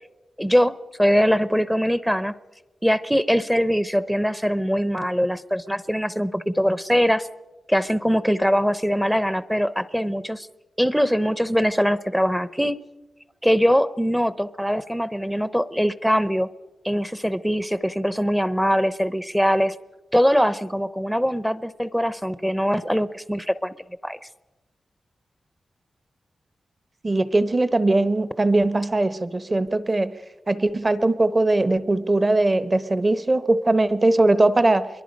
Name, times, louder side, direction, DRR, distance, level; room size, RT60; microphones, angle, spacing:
voice 1, 0.4-0.7 1.0-2.3 2.8-7.3 7.7-10.5 10.8-12.8 13.4-16.5 16.8-19.7 20.1-23.7 24.0-24.2, equal, ahead, 14 dB, 0.6 m, -22 dB
voice 2, 27.0-30.1 30.5-34.9, right 2 dB, 25° right, 12 dB, 0.9 m, -20 dB
26.5 x 22.5 x 5.3 m, 1.1 s
wide cardioid pair, 155°, 0 cm